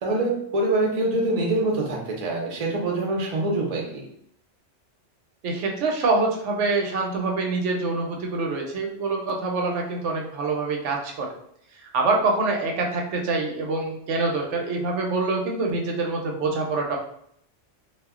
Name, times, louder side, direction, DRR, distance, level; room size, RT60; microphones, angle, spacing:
voice 1, 0.0-4.1, right 2 dB, 45° right, -1 dB, 0.5 m, -25 dB
voice 2, 5.4-11.3 11.9-17.0, right 3 dB, 75° right, 0 dB, 0.9 m, -25 dB
2.3 x 2.1 x 3.5 m, 0.71 s
omnidirectional pair, 1.3 m